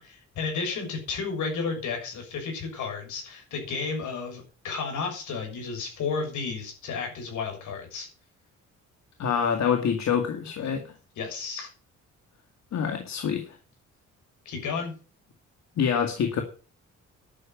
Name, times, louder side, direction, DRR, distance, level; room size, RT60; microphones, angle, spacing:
voice 1, 0.0-8.1 11.2-11.7 14.4-14.9, left 5 dB, 80° left, 3 dB, 6.6 m, -32 dB
voice 2, 9.2-10.8 12.7-13.4 15.8-16.4, left 7 dB, 65° left, 5 dB, 2.1 m, -26 dB
11.0 x 6.8 x 9.0 m, 0.37 s
cardioid pair, 90°, 30 cm